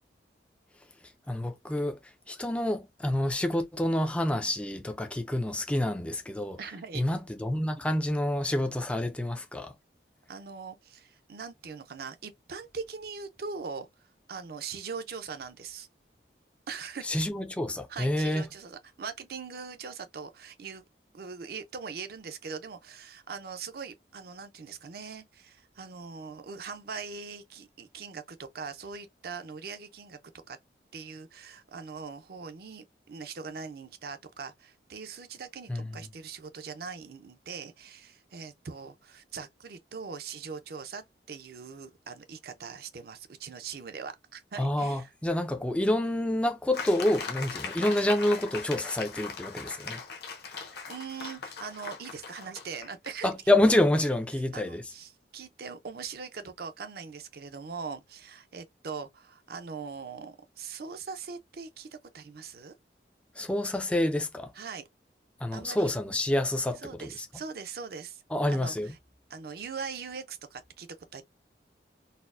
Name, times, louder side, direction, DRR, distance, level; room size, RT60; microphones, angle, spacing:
voice 1, 1.3-6.6 6.9-9.7 17.0-18.4 35.7-36.0 44.6-50.0 50.5-50.6 53.2-54.8 63.4-64.5 65.4-67.3 68.3-68.9, left 1 dB, 5° left, 0.3 m, -28 dB
voice 2, 6.6-7.0 10.3-13.9 14.3-15.9 16.7-17.0 17.9-20.8 21.1-30.2 30.5-30.6 30.9-45.1 50.9-53.3 54.5-62.8 64.5-64.9 65.5-65.9 66.8-68.2 68.5-68.9 69.3-71.2, right 5 dB, 60° right, 0.5 m, -41 dB
sound 1, 46.7-53.2, left 5 dB, 65° left, 0.8 m, -39 dB
4.1 x 2.0 x 2.4 m
head